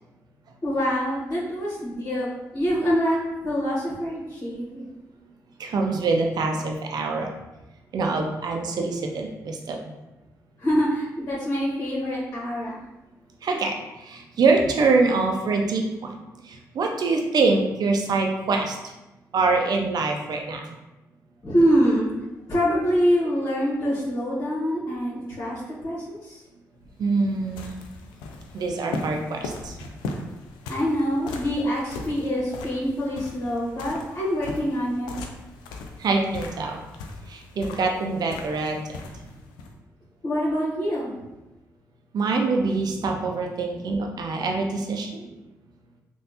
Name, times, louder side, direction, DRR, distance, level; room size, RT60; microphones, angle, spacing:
voice 1, 0.6-4.8 10.6-12.8 21.4-22.1 22.5-26.4 30.7-35.1 40.2-41.1, equal, 45° left, -8 dB, 1.5 m, -25 dB
voice 2, 5.6-7.3 7.9-9.8 13.4-18.9 19.3-20.8 27.0-27.7 28.5-29.8 36.0-36.8 37.3-39.0 42.1-45.3, right 3 dB, 60° right, 2 dB, 0.6 m, -25 dB
sound 1, 26.8-39.8, left 3 dB, 90° left, 0.4 m, -39 dB
3.3 x 2.6 x 2.7 m, 1.0 s
supercardioid pair, 45°, 8 cm